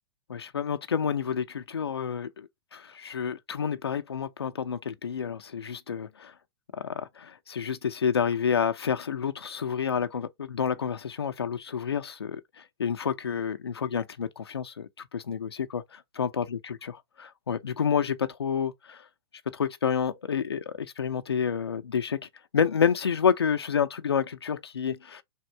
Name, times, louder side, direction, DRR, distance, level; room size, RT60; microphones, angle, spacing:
voice 1, 0.3-6.3 6.7-16.4 16.9-19.1 19.5-22.2 22.5-25.2, left 7 dB, 80° left, 0.5 m, -29 dB
3.5 x 2.6 x 4.3 m
figure-of-eight pair, 105°, 13 cm